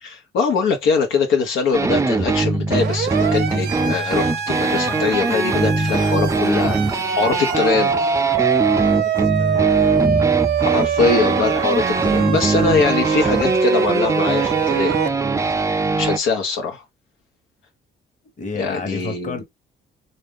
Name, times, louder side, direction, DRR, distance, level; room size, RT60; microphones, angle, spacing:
voice 1, 0.0-6.8 7.2-8.0 10.7-15.0 15.7-16.8 18.6-19.4, left 4 dB, 85° left, 0.9 m, -22 dB
sound 1, 1.7-16.2, right 3 dB, 15° right, 0.4 m, -21 dB
Siren, 2.7-15.1, right 8 dB, 55° right, 0.7 m, -23 dB
voice 2, 4.6-6.2 7.5-7.7 8.8-9.8 18.4-19.4, left 4 dB, 40° left, 1.1 m, -33 dB
3.6 x 2.5 x 3.6 m
cardioid pair, 90°, 20 cm